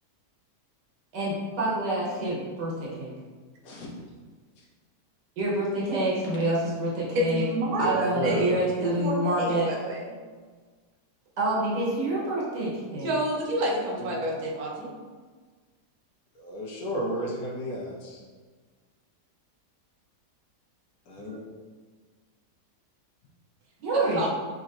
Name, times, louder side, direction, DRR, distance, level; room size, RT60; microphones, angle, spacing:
voice 1, 1.1-3.1 5.4-7.4 7.8-9.7 11.4-13.1 23.8-24.3, right 1 dB, 85° right, -6 dB, 1.6 m, -27 dB
voice 2, 7.1-10.2 13.0-14.9 23.9-24.3, right 1 dB, 65° right, -2 dB, 1.3 m, -29 dB
voice 3, 7.8-8.7 14.0-14.1 16.3-18.2 21.1-21.4, right 1 dB, 65° left, -4 dB, 1.1 m, -32 dB
6.3 x 2.9 x 2.5 m, 1.4 s
omnidirectional pair, 1.8 m